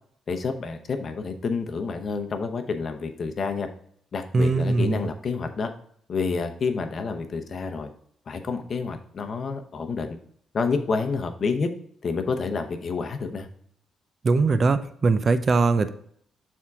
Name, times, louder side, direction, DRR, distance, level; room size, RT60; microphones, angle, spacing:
voice 1, 0.3-3.7 4.1-5.7 6.1-7.9 8.3-10.1 10.5-11.7 12.0-13.5, left 4 dB, 45° left, 6 dB, 0.8 m, -28 dB
voice 2, 4.3-5.1 14.2-15.9, right 3 dB, 40° right, 12 dB, 0.5 m, -21 dB
7.2 x 3.7 x 4.7 m, 0.63 s
cardioid pair, 120°, 0 cm